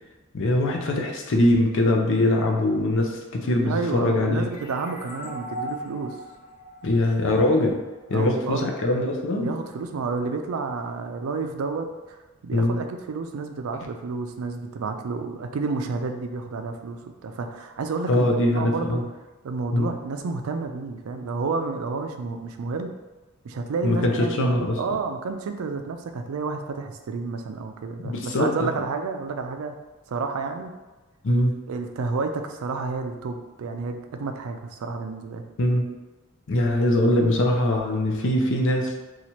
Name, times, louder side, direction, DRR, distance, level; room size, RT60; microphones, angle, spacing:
voice 1, 0.3-4.4 6.8-7.7 8.1-9.5 12.5-12.8 18.1-19.0 19.7-19.9 23.8-24.8 28.0-28.7 31.2-31.5 35.6-35.9 36.5-38.9, left 1 dB, 65° left, 2 dB, 0.6 m, -22 dB
voice 2, 3.6-6.1 8.1-8.6 9.3-12.2 12.4-19.0 19.4-22.9 23.4-29.7 30.1-30.7 31.7-35.5, right 4 dB, 85° right, 6 dB, 0.4 m, -30 dB
sound 1, 4.5-7.9, equal, 40° left, 1.3 m, -38 dB
3.0 x 2.4 x 4.2 m, 1.2 s
head